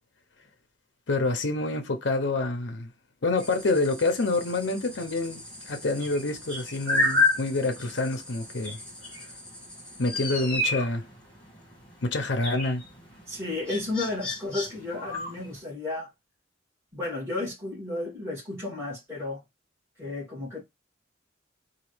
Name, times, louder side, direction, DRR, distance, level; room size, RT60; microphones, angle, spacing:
voice 1, 1.1-2.9 3.2-8.8 10.0-11.0 12.0-12.8, left 2 dB, 65° left, 0.8 m, -27 dB
sound 1, 3.4-15.6, left 2 dB, 5° left, 1.9 m, -32 dB
voice 2, 13.3-16.1 16.9-19.4 20.0-20.6, left 2 dB, 15° right, 2.3 m, -33 dB
4.0 x 2.7 x 3.2 m
head